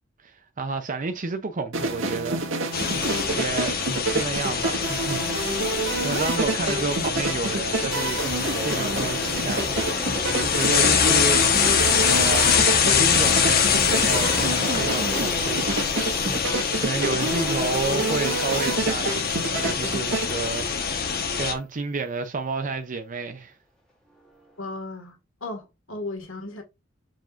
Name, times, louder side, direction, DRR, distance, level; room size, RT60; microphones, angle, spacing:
voice 1, 0.2-2.5 3.1-3.8 4.1-5.6 6.0-8.2 8.6-11.5 12.1-12.7 12.9-14.4 14.8-15.7 16.5-23.6, right 3 dB, 40° right, 0.6 m, -31 dB
sound 1, 1.7-20.3, right 2 dB, 80° right, 1.8 m, -28 dB
sound 2, 2.7-21.5, left 6 dB, 50° left, 1.2 m, -24 dB
sound 3, 8.2-21.2 21.6-21.7 24.1-24.6, equal, 5° left, 2.0 m, -39 dB
voice 2, 24.6-26.6, left 2 dB, 75° left, 1.9 m, -35 dB
7.4 x 5.0 x 2.5 m
head